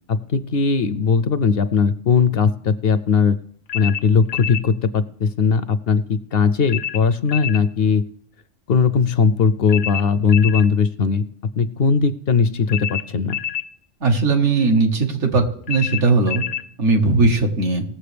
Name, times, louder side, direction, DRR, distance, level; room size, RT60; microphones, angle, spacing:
voice 1, 0.1-3.4 3.7-8.0 8.7-11.2 11.6-13.4, left 5 dB, 60° left, 13 dB, 0.7 m, -19 dB
sound 1, 3.7-4.7 6.7-7.7 9.7-10.7 12.7-13.7 15.7-16.7, left 10 dB, 80° left, 1.0 m, -28 dB
voice 2, 14.0-16.4 16.8-17.8, right 3 dB, 75° right, 3 dB, 1.8 m, -18 dB
19.0 x 7.3 x 3.4 m, 0.65 s
omnidirectional pair, 1.2 m